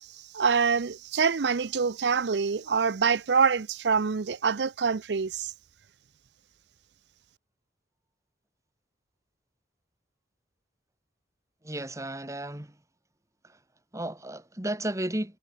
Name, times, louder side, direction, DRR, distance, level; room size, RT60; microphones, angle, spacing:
voice 1, 0.3-5.5, right 5 dB, 70° right, 0.6 m, -25 dB
voice 2, 11.6-12.8 13.4-13.6 13.9-15.4, right 1 dB, 15° right, 2.2 m, -33 dB
head